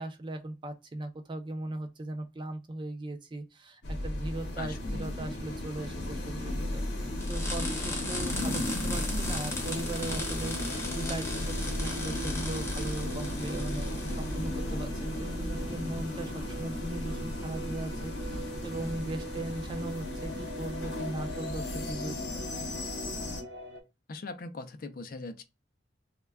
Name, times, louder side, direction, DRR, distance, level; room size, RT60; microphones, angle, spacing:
voice 1, 0.0-22.2 22.6-22.7, right 1 dB, 25° right, 0.4 m, -39 dB
sound 1, 3.8-23.4, left 1 dB, 70° left, 0.7 m, -35 dB
voice 2, 4.6-5.1 24.1-25.4, left 3 dB, 50° left, 0.4 m, -40 dB
sound 2, 7.2-14.4, left 2 dB, 15° left, 0.7 m, -38 dB
sound 3, 9.6-23.8, right 1 dB, 65° right, 0.7 m, -43 dB
2.2 x 2.2 x 3.3 m
head